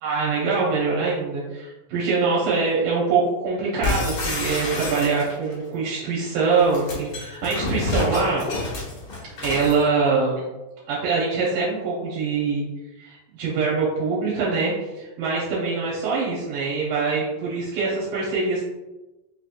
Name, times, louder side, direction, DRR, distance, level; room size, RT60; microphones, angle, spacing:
voice 1, 0.0-8.5 9.4-10.4 10.9-12.6 13.0-18.6, right 4 dB, 80° right, -7 dB, 2.4 m, -24 dB
sound 1, 3.8-5.5 6.5-9.8, left 2 dB, 80° left, 1.0 m, -28 dB
5.2 x 2.9 x 2.4 m, 1.1 s
omnidirectional pair, 3.8 m